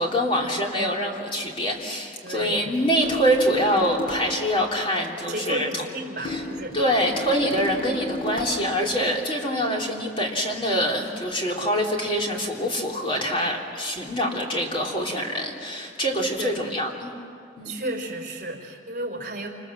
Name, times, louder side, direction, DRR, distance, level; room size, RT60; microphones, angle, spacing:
voice 1, 0.0-5.8 6.2-6.4 6.7-17.1 17.6-17.8, equal, 30° left, -1 dB, 3.4 m, -25 dB
voice 2, 2.2-2.7 5.3-6.8 7.4-7.6 16.4-16.6 17.6-19.5, right 1 dB, 45° right, 2 dB, 4.6 m, -33 dB
sound 1, 3.0-4.4 6.3-8.7, left 2 dB, 50° left, 5.6 m, -33 dB
28.5 x 27.0 x 7.6 m, 2.4 s
head